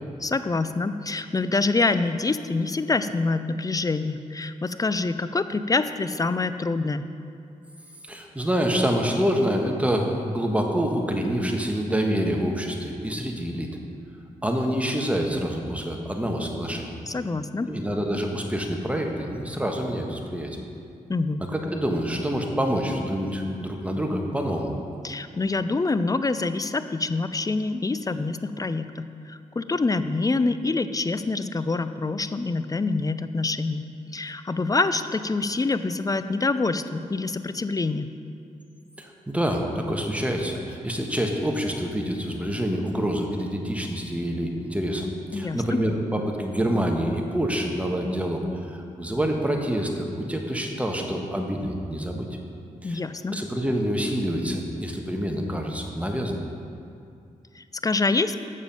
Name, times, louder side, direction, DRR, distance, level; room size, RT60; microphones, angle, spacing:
voice 1, 0.2-7.1 17.1-17.7 21.1-21.4 25.0-33.8 34.1-38.1 45.3-45.8 52.8-53.4 57.6-58.4, left 3 dB, 25° left, 12 dB, 0.4 m, -26 dB
voice 2, 8.0-13.7 14.4-16.9 17.7-20.6 21.5-24.7 39.0-48.4 48.7-52.3 52.8-53.0 53.3-56.4, equal, 10° right, 2 dB, 1.3 m, -27 dB
7.4 x 6.9 x 5.4 m, 2.5 s
supercardioid pair, 45°, 16 cm